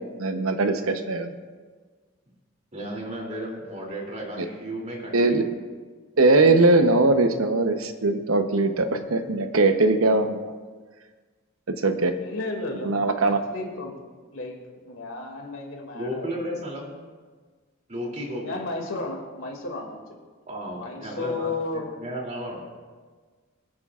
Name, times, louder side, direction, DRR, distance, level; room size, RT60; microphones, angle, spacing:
voice 1, 0.2-1.3 5.1-5.4 6.2-10.4 11.8-12.1 12.8-13.4, right 2 dB, 80° right, 7 dB, 0.9 m, -20 dB
voice 2, 2.7-5.4 15.9-16.9 17.9-18.6 20.5-22.7, equal, 35° right, -2 dB, 2.9 m, -34 dB
voice 3, 12.2-14.0 14.3-16.7 18.4-20.0 20.7-22.0, left 3 dB, 70° left, 1 dB, 2.4 m, -34 dB
25.0 x 9.7 x 2.5 m, 1.5 s
head